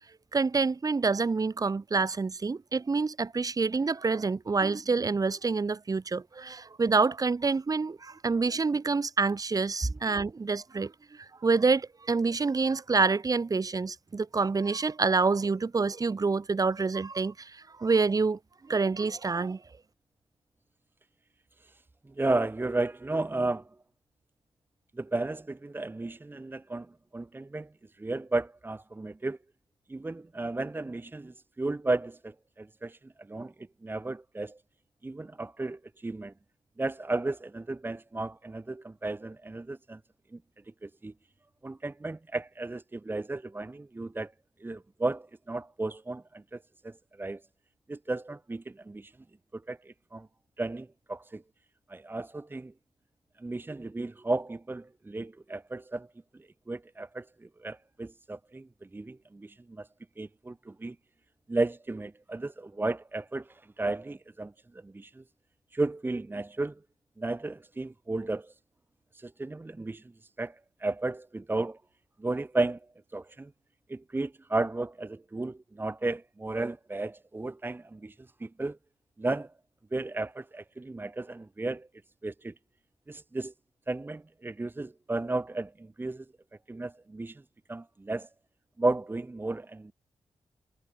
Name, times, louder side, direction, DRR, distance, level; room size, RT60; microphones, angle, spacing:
voice 1, 0.3-18.4 18.7-19.6, right 4 dB, 35° right, 2.0 m, -27 dB
voice 2, 22.1-23.7 24.9-27.7 28.0-29.4 29.9-33.0 33.3-34.6 35.0-36.3 36.8-40.0 40.8-41.1 41.6-44.3 44.6-46.6 46.8-47.4 47.9-49.1 49.5-50.3 50.6-51.4 51.9-52.7 53.4-56.1 56.7-59.9 60.2-61.0 61.5-65.2 65.7-66.8 67.2-68.5 69.1-71.8 72.2-72.8 73.1-73.5 73.9-78.1 78.4-78.8 79.2-79.5 79.9-81.9 82.2-82.5 83.1-83.5 83.9-86.2 86.7-87.4 87.7-88.3 88.8-89.9, right 2 dB, 20° right, 1.2 m, -34 dB
wide cardioid pair, 105°, 11 cm